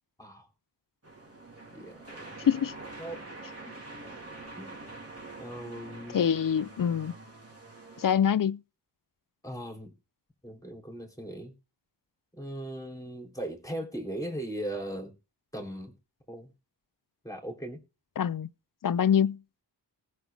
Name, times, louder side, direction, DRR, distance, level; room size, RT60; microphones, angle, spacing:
sound 1, 1.0-8.1, right 2 dB, 35° right, 2.9 m, -45 dB
voice 1, 1.7-2.2 3.0-3.2 4.6-4.8 5.4-6.2 9.4-9.9 10.4-11.5 12.4-15.1 15.5-15.9 16.3-16.5 17.2-17.8, right 1 dB, 10° left, 3.4 m, -38 dB
voice 2, 6.1-7.1 8.0-8.6 18.2-18.5 18.8-19.4, left 8 dB, 50° left, 0.6 m, -25 dB
19.5 x 6.6 x 3.5 m
wide cardioid pair, 85°, 43 cm